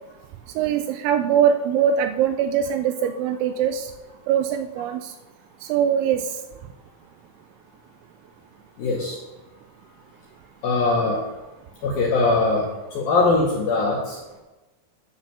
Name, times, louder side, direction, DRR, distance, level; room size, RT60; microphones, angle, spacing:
voice 1, 0.6-3.9 4.3-5.1 5.6-6.4, right 8 dB, 85° right, 8 dB, 2.7 m, -22 dB
voice 2, 8.8-9.2 10.6-11.2 11.8-12.7 12.9-14.2, left 3 dB, 75° left, -2 dB, 2.1 m, -21 dB
10.0 x 4.8 x 6.7 m, 1.1 s
omnidirectional pair, 5.7 m